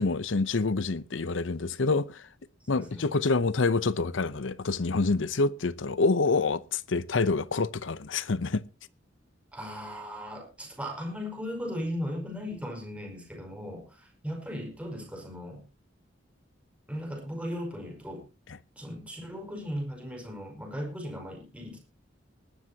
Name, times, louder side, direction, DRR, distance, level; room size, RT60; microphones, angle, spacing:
voice 1, 0.0-2.3 2.7-8.6, left 3 dB, 80° left, 0.8 m, -27 dB
voice 2, 2.7-3.1 9.5-15.7 16.9-18.3 18.8-21.8, equal, 5° right, 5.2 m, -37 dB
20.0 x 12.0 x 2.9 m
head